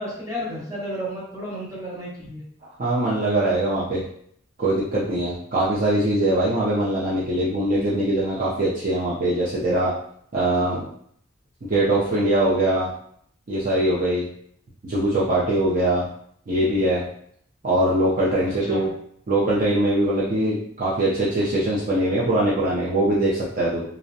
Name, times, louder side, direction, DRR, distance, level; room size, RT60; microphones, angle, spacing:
voice 1, 0.0-2.4 18.7-18.8, equal, 15° right, -7 dB, 0.7 m, -32 dB
voice 2, 2.8-4.0 4.6-9.9 10.3-10.9 11.6-12.9 13.5-14.2 14.8-16.1 16.5-17.0 17.6-18.9 19.3-23.8, right 1 dB, 40° right, -7 dB, 0.4 m, -22 dB
2.5 x 2.0 x 2.6 m, 0.65 s
head